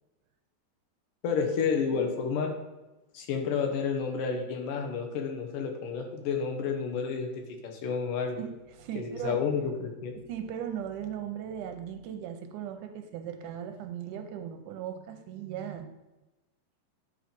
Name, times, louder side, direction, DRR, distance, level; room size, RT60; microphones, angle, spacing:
voice 1, 1.2-2.6 3.1-8.4 9.0-10.2, left 5 dB, 80° left, 3 dB, 2.7 m, -30 dB
voice 2, 8.4-9.4 10.3-15.9, right 9 dB, 75° right, 6 dB, 2.1 m, -38 dB
10.0 x 4.5 x 5.1 m, 1.1 s
omnidirectional pair, 3.8 m